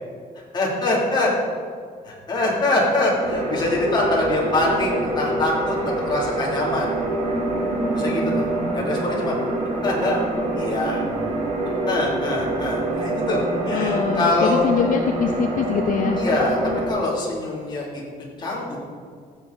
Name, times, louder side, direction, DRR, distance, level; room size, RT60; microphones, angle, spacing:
voice 1, 0.5-1.3 2.0-6.9 7.9-9.4 9.8-10.2 10.6-11.0 11.9-14.6 16.2-17.8 18.4-18.8, left 2 dB, 30° left, -4 dB, 2.9 m, -24 dB
sound 1, 3.2-16.9, right 2 dB, 50° right, 1.7 m, -25 dB
voice 2, 13.7-16.2, left 7 dB, 65° left, 5 dB, 0.6 m, -23 dB
15.5 x 7.1 x 4.0 m, 2.1 s
cardioid pair, 155°, 15 cm